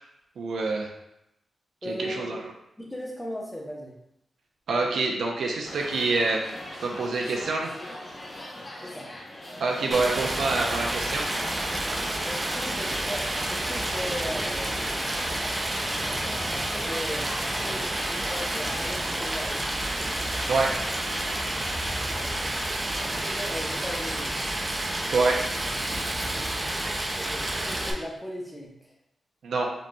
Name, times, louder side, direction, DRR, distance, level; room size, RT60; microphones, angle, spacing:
voice 1, 0.4-0.9 1.9-2.4 4.7-6.5 6.8-7.7 9.6-11.3 20.5-20.8 25.1-25.4 29.4-29.7, right 3 dB, 80° right, 0 dB, 0.6 m, -26 dB
voice 2, 1.8-2.4 2.8-3.9 8.8-9.1 12.2-14.8 16.0-19.6 22.2-22.5 23.0-24.3 27.3-28.9, equal, 5° left, -1 dB, 0.7 m, -37 dB
sound 1, 5.6-21.7, left 1 dB, 35° left, 0.9 m, -41 dB
Stream, 9.9-27.9, right 1 dB, 20° right, 0.4 m, -30 dB
5.1 x 2.9 x 2.3 m, 0.83 s
wide cardioid pair, 135°, 0 cm